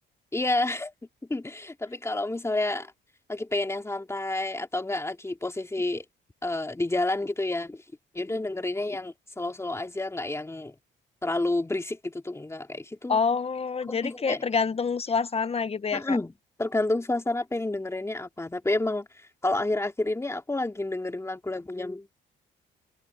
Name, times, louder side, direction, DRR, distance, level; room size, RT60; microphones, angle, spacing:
voice 1, 0.3-0.9 1.3-2.9 3.3-6.0 6.4-7.8 8.1-10.7 11.2-13.2 13.9-14.4 15.9-16.3 16.6-19.1 19.4-22.2, left 2 dB, 15° left, 2.7 m, -29 dB
voice 2, 13.1-16.2, left 5 dB, 30° left, 0.9 m, -27 dB
cardioid pair, 90°, 20 cm